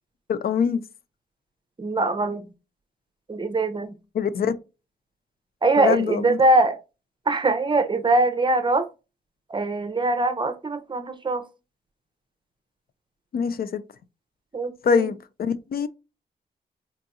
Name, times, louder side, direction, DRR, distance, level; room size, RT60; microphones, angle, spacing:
voice 1, 0.3-0.8 4.1-4.5 5.8-6.4 13.3-13.8 14.8-15.9, left 6 dB, 60° left, 0.4 m, -24 dB
voice 2, 1.8-2.5 3.3-4.0 5.6-6.8 7.3-8.9 9.5-11.4 14.5-15.1, right 2 dB, 30° right, 0.6 m, -22 dB
3.8 x 2.7 x 2.3 m
cardioid pair, 65°, 17 cm